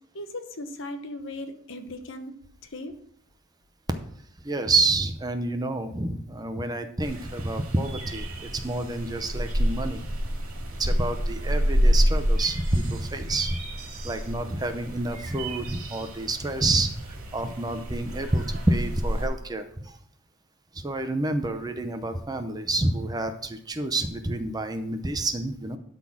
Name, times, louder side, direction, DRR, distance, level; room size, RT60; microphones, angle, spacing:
voice 1, 0.1-2.3 2.6-3.0, left 1 dB, 55° left, 8 dB, 1.0 m, -37 dB
voice 2, 4.4-10.1 10.8-13.6 14.0-20.0 20.7-25.8, right 2 dB, 15° right, 7 dB, 0.6 m, -28 dB
sound 1, 7.0-19.3, equal, 70° right, 2.2 m, -28 dB
12.0 x 4.0 x 6.1 m, 0.68 s
head